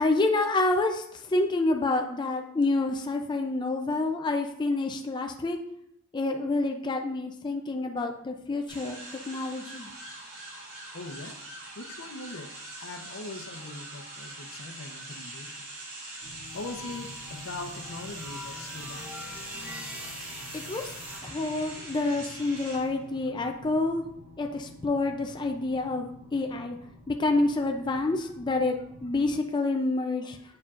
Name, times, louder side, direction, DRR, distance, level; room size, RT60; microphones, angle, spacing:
voice 1, 0.0-5.6 6.1-9.0 9.3-9.9 20.5-20.9 21.2-24.1 24.4-26.8 27.1-30.4, left 2 dB, 20° left, 3 dB, 0.4 m, -28 dB
sound 1, 8.7-23.2, right 2 dB, 90° right, 1.7 m, -43 dB
voice 2, 10.9-11.4 11.8-12.5 12.8-15.6 16.5-19.3, left 3 dB, 80° left, 5 dB, 0.8 m, -41 dB
sound 2, 16.2-29.3, left 1 dB, 30° right, 1.9 m, -50 dB
sound 3, 16.5-21.2, left 1 dB, 5° right, 0.8 m, -44 dB
8.4 x 4.7 x 2.5 m, 0.74 s
head